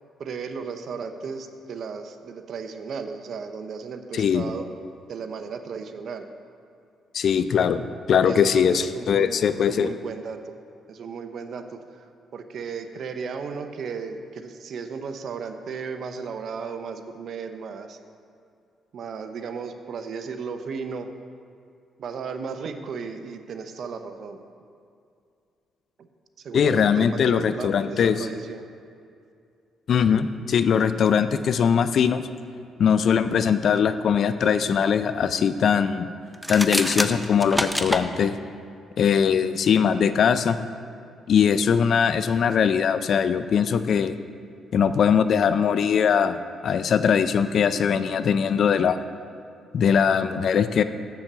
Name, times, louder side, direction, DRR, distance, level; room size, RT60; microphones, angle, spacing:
voice 1, 0.2-4.7 5.1-6.2 8.2-10.6 10.9-12.1 12.3-18.0 18.9-21.1 22.0-24.4 26.4-28.6, right 5 dB, 60° right, 7 dB, 0.7 m, -35 dB
voice 2, 4.1-4.4 7.1-7.8 8.1-9.9 26.5-28.3 29.9-32.2 32.8-36.0 36.5-38.4 39.0-40.6 41.3-44.1 44.7-49.0 49.7-50.8, left 7 dB, 60° left, 12 dB, 0.4 m, -21 dB
sound 1, 36.3-38.0, equal, ahead, 0.5 m, -26 dB
7.4 x 7.0 x 6.7 m, 2.4 s
cardioid pair, 90°, 0 cm